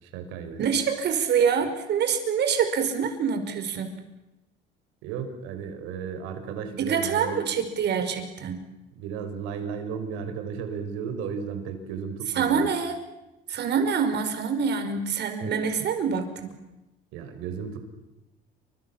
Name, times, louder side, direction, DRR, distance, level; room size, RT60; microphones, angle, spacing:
voice 1, 0.0-0.6 5.0-7.4 8.9-12.7 17.1-17.8, right 6 dB, 90° right, 8 dB, 5.6 m, -34 dB
voice 2, 0.6-4.0 6.7-8.7 12.3-13.0 13.5-16.6, right 6 dB, 55° right, 8 dB, 5.3 m, -26 dB
29.0 x 25.5 x 7.4 m, 0.99 s
cardioid pair, 105°, 21 cm